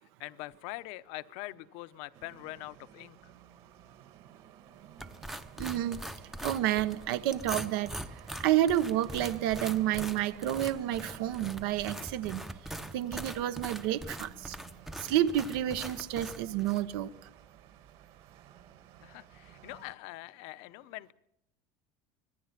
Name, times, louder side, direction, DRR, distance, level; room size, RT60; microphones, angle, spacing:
voice 1, 0.2-3.3 19.0-21.1, left 19 dB, 60° left, 0.9 m, -43 dB
sound 1, 2.1-20.0, right 10 dB, 45° right, 1.8 m, -53 dB
sound 2, 5.0-16.9, right 1 dB, 5° right, 0.7 m, -42 dB
voice 2, 5.6-6.0 6.4-7.9 8.4-12.4 12.9-14.6 15.0-17.1, right 12 dB, 80° right, 1.1 m, -30 dB
25.5 x 21.0 x 5.9 m
cardioid pair, 175°, 12 cm